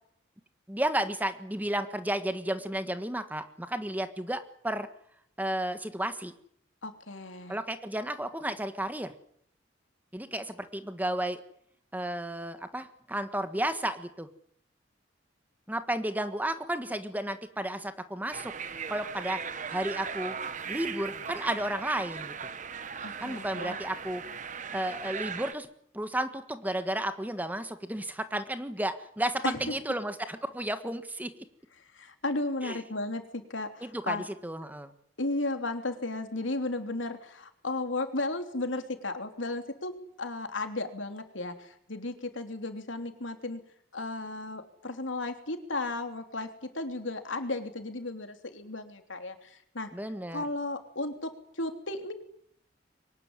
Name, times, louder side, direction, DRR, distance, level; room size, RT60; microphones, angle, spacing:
voice 1, 0.7-4.9 5.4-6.3 7.5-9.1 10.1-11.4 11.9-14.3 15.7-18.5 18.9-19.4 19.7-20.3 20.7-22.3 23.2-24.2 24.7-25.7 25.9-31.4 32.6-32.8 33.8-34.9 49.9-50.4, right 1 dB, 10° right, 9 dB, 1.5 m, -32 dB
voice 2, 6.8-7.6 23.0-23.8 29.4-29.7 31.9-34.2 35.2-43.6 43.9-49.9 50.3-52.1, left 2 dB, 85° left, 6 dB, 3.3 m, -34 dB
sound 1, 18.3-25.5, right 6 dB, 40° right, 1.2 m, -38 dB
23.5 x 19.5 x 9.8 m, 0.69 s
head